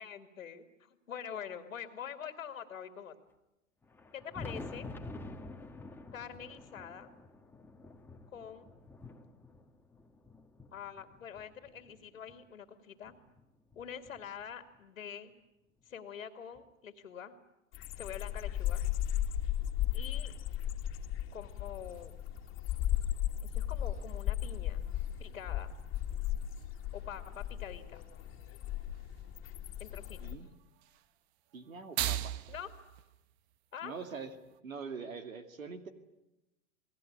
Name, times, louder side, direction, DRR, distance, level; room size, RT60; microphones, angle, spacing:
voice 1, 0.0-3.2 4.1-4.9 6.1-7.1 8.3-8.7 10.7-13.2 13.8-15.3 15.8-17.3 18.0-18.8 19.9-20.4 21.3-22.2 23.4-24.9 25.2-25.7 26.9-28.0 29.8-30.2 32.5-32.7 33.7-33.9, left 8 dB, 80° left, 6 dB, 2.4 m, -45 dB
Thunder, 3.8-12.4 13.0-14.8 15.9-16.0 16.6-16.7 18.5-18.6 20.0-20.1 21.7-21.8, left 2 dB, 5° left, 1.6 m, -49 dB
sound 1, 17.7-30.3, left 12 dB, 30° left, 2.3 m, -36 dB
sound 2, 21.9-34.6, right 12 dB, 50° right, 1.2 m, -45 dB
voice 2, 31.5-32.3 33.8-34.3 34.6-35.9, right 5 dB, 85° right, 8 dB, 2.4 m, -43 dB
29.0 x 20.0 x 8.8 m, 0.96 s
hypercardioid pair, 105°, 39 cm